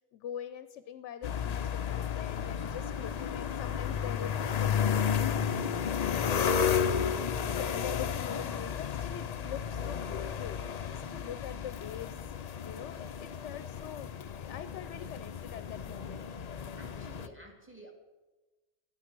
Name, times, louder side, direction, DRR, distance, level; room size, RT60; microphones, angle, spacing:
voice 1, 0.1-6.9 7.5-12.2 12.6-16.3, left 9 dB, 75° left, 12 dB, 0.9 m, -44 dB
sound 1, 1.2-17.3, left 7 dB, 55° left, 0.4 m, -33 dB
voice 2, 16.8-17.9, right 1 dB, 10° right, 2 dB, 2.1 m, -51 dB
12.0 x 9.9 x 6.0 m, 1.2 s
omnidirectional pair, 1.2 m